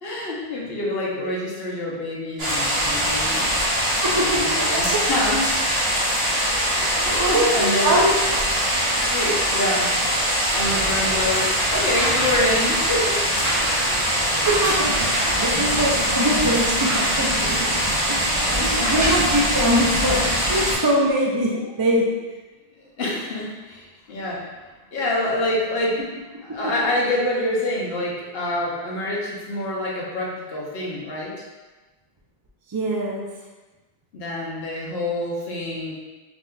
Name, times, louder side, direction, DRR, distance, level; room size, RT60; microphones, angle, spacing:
voice 1, 0.0-3.5 4.2-5.6 6.7-8.0 8.9-9.9 10.5-13.2 13.8-14.0 18.5-18.9 23.0-24.5 24.9-26.0 26.4-31.3 34.1-35.9, left 1 dB, 75° left, -3 dB, 1.0 m, -26 dB
sound 1, 2.4-20.7, equal, 75° right, 1.3 m, -22 dB
voice 2, 4.0-4.4 4.7-5.0 6.8-8.1 14.1-17.8 18.1-18.2 18.5-22.1 32.7-33.3, right 1 dB, 40° right, -2 dB, 0.3 m, -23 dB
sound 2, 11.9-12.6 13.3-15.4 16.0-16.1 16.4-17.5 18.6-19.3 20.3-20.4, equal, 60° right, 1.3 m, -30 dB
4.8 x 2.6 x 2.3 m, 1.2 s
omnidirectional pair, 1.0 m